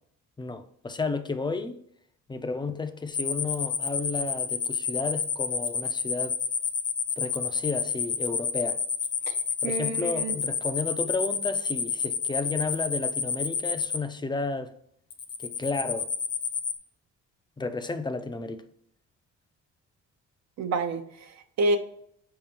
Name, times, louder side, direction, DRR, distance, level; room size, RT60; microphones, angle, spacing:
voice 1, 0.4-1.8 2.3-6.4 7.2-8.8 9.6-14.7 15.4-16.1 17.6-18.6, left 3 dB, 15° left, 0.4 m, -32 dB
sound 1, 3.1-14.0 15.1-16.8, left 6 dB, 50° left, 0.8 m, -29 dB
voice 2, 9.6-10.3 20.6-21.8, right 2 dB, 60° right, 0.6 m, -28 dB
5.0 x 3.7 x 2.9 m
cardioid pair, 90°, 30 cm